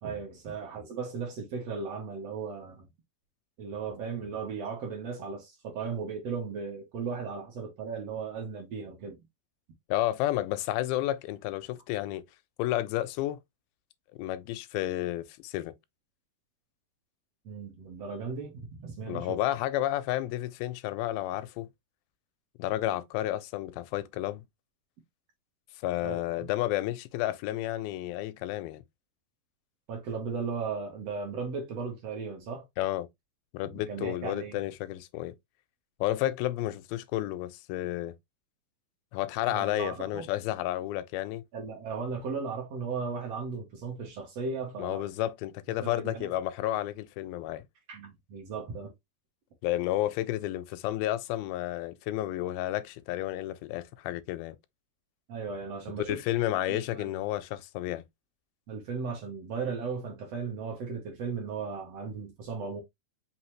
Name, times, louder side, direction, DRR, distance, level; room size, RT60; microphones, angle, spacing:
voice 1, 0.0-2.9 3.6-9.2 17.4-19.4 26.0-26.2 29.9-32.6 33.7-34.6 39.5-40.3 41.5-45.1 45.8-46.3 47.9-48.9 55.3-56.2 56.6-57.1 58.7-62.8, right 5 dB, 65° right, 1.6 m, -36 dB
voice 2, 9.9-12.2 12.6-13.4 14.1-15.7 19.1-21.7 22.6-24.4 25.8-28.8 32.8-33.1 33.5-35.4 36.0-38.1 39.1-41.4 44.8-47.6 49.6-54.6 56.1-58.0, left 14 dB, 85° left, 2.4 m, -31 dB
5.6 x 2.8 x 3.0 m
omnidirectional pair, 4.2 m